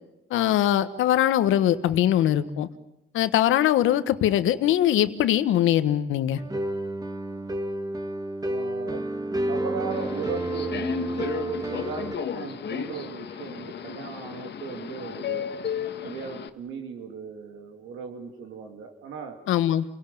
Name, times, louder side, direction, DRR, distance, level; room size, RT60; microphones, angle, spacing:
voice 1, 0.3-2.7 3.1-6.4 19.5-19.8, left 11 dB, 85° left, 12 dB, 1.3 m, -22 dB
sound 1, 6.3-12.1, right 1 dB, 20° right, 1.8 m, -30 dB
voice 2, 8.5-9.0 9.5-15.5 16.0-19.4, right 6 dB, 85° right, 3 dB, 2.9 m, -37 dB
Subway metro underground, 9.9-16.5, left 8 dB, 60° left, 1.6 m, -34 dB
29.0 x 17.5 x 9.3 m, 0.93 s
cardioid pair, 90°, 20 cm